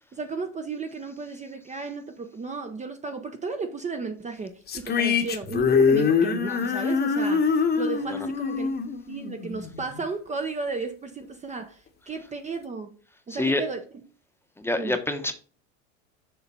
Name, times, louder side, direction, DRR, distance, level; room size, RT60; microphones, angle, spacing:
voice 1, 0.1-8.8 9.1-12.9 13.3-13.8 14.8-15.0, right 4 dB, 20° right, 0.8 m, -34 dB
sound 1, 4.7-10.0, left 5 dB, 25° left, 1.2 m, -24 dB
voice 2, 13.3-13.6 14.6-15.3, left 2 dB, 5° left, 1.0 m, -26 dB
7.0 x 3.8 x 5.5 m
hypercardioid pair, 105°, 37 cm